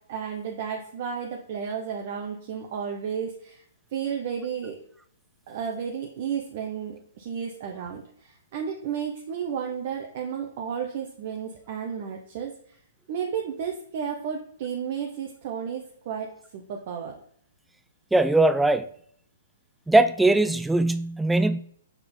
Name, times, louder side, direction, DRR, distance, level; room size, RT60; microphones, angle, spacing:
voice 1, 0.1-3.6 3.9-4.8 5.5-12.5 13.1-17.2, right 7 dB, 45° right, 0.9 m, -32 dB
voice 2, 18.1-18.9 19.9-21.6, right 2 dB, 5° right, 0.4 m, -20 dB
5.8 x 5.8 x 3.7 m
figure-of-eight pair, 120°, 0 cm